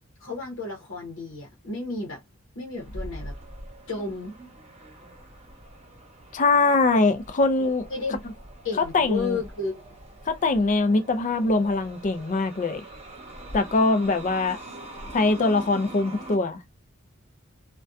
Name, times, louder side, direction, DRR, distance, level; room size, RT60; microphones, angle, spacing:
voice 1, 0.2-2.2 2.6-3.4 3.9-4.4 7.6-8.2 8.6-9.8, left 3 dB, 90° left, 0.8 m, -32 dB
sound 1, 2.8-16.4, right 1 dB, 30° right, 0.8 m, -43 dB
voice 2, 6.3-7.9 8.8-9.4 10.3-12.8 13.5-14.6 15.1-16.6, left 3 dB, 40° left, 0.5 m, -22 dB
2.6 x 2.2 x 2.2 m
head